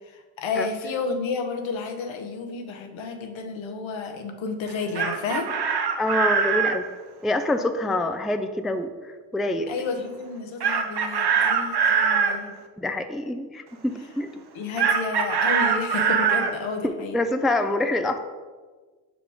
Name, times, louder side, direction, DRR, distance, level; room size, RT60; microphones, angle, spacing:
voice 1, 0.1-5.5 9.7-12.5 14.5-17.2, left 4 dB, 75° left, 5 dB, 1.0 m, -31 dB
Chicken rooster, 4.7-6.8 10.6-12.4 14.8-16.5, right 6 dB, 55° right, 0.8 m, -22 dB
voice 2, 6.0-6.8 7.2-9.7 12.8-14.4 16.8-18.2, left 2 dB, ahead, 8 dB, 0.3 m, -26 dB
5.1 x 5.0 x 4.9 m, 1.4 s
supercardioid pair, 50°, 47 cm